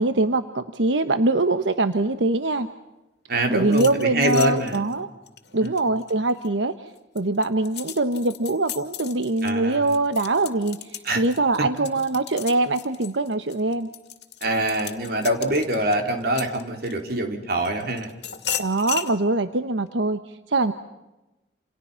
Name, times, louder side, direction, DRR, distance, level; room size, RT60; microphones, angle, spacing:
voice 1, 0.0-2.7 3.5-5.1 5.5-6.7 7.1-13.9 18.6-20.2 20.5-20.7, right 2 dB, 85° right, 10 dB, 1.1 m, -23 dB
voice 2, 3.3-4.8 5.6-5.7 9.4-9.9 11.0-11.2 11.6-11.7 14.4-18.1, right 1 dB, 55° right, 4 dB, 4.3 m, -24 dB
sound 1, 3.6-6.5 7.0-17.1 17.6-19.1, left 9 dB, 60° left, 2.5 m, -36 dB
29.0 x 29.0 x 5.8 m, 1.0 s
head